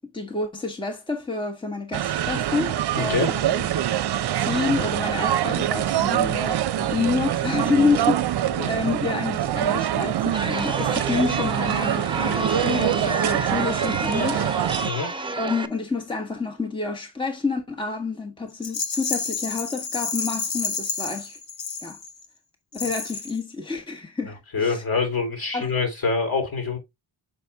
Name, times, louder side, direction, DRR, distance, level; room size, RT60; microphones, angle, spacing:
voice 1, 0.1-3.7 4.4-14.8 15.4-21.4 21.8-22.0 22.7-24.8 25.5-25.7, left 4 dB, 10° left, 1.2 m, -28 dB
sound 1, 1.9-14.9, right 11 dB, 65° right, 0.6 m, -25 dB
voice 2, 2.9-3.3 8.6-8.7 14.8-15.1 22.8-22.9 24.5-26.8, left 4 dB, 55° left, 3.5 m, -25 dB
Chatter, 10.3-15.7, right 2 dB, 10° right, 0.9 m, -29 dB
Rattle, 18.6-22.3 22.7-23.4, left 5 dB, 80° left, 1.5 m, -30 dB
6.9 x 4.1 x 3.3 m
cardioid pair, 80°, 43 cm